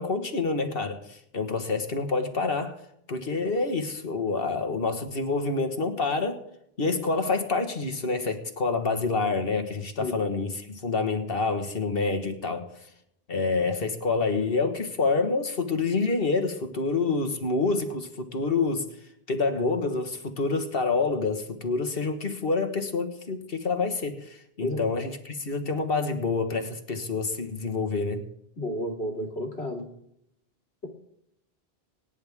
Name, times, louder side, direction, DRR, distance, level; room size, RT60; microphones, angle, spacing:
voice 1, 0.0-2.8 3.1-6.4 6.8-12.7 13.3-18.9 19.3-28.2, left 3 dB, 65° left, 6 dB, 1.8 m, -27 dB
voice 2, 28.6-29.9, left 1 dB, 80° left, 1 dB, 2.9 m, -31 dB
25.0 x 10.0 x 3.6 m, 0.76 s
omnidirectional pair, 1.1 m